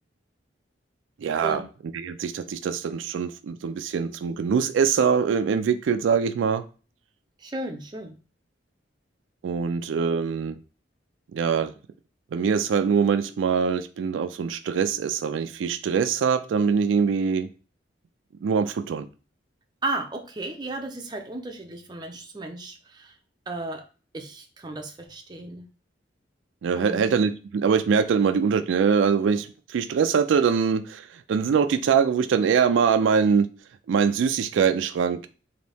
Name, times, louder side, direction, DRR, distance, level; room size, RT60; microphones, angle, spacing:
voice 1, 1.2-1.6 1.9-6.6 9.4-10.6 11.3-11.7 12.3-17.5 18.4-19.1 26.6-33.5 33.9-35.3, right 6 dB, 85° right, 10 dB, 0.3 m, -23 dB
voice 2, 7.4-8.2 19.8-23.1 23.5-23.8 24.1-25.6 26.8-27.1, right 2 dB, 25° right, 3 dB, 0.6 m, -34 dB
4.0 x 2.7 x 3.3 m, 0.35 s
head